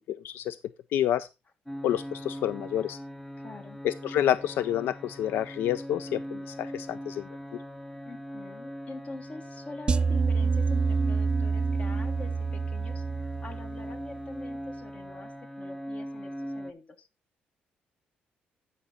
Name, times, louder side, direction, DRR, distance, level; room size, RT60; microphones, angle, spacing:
voice 1, 0.1-0.6 0.9-1.3 1.8-3.0 3.8-7.3, left 11 dB, 80° left, 16 dB, 0.4 m, -28 dB
sound 1, 1.7-16.7, equal, 10° left, 0.7 m, -40 dB
voice 2, 3.4-3.8 8.0-17.1, left 3 dB, 40° left, 8 dB, 1.6 m, -45 dB
sound 2, 9.9-14.2, right 5 dB, 25° right, 0.4 m, -27 dB
12.0 x 5.3 x 4.0 m, 0.25 s
cardioid pair, 105°, 4 cm